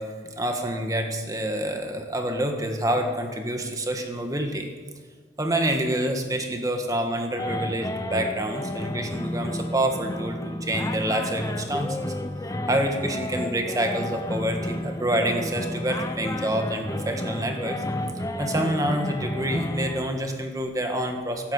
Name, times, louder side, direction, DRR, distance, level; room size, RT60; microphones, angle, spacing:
voice 1, 0.0-4.7 5.4-12.1 12.7-17.8 18.4-21.5, right 1 dB, 20° right, 4 dB, 1.5 m, -27 dB
sound 1, 7.4-20.1, left 1 dB, 20° left, 0.9 m, -31 dB
13.5 x 12.0 x 8.2 m, 1.5 s
head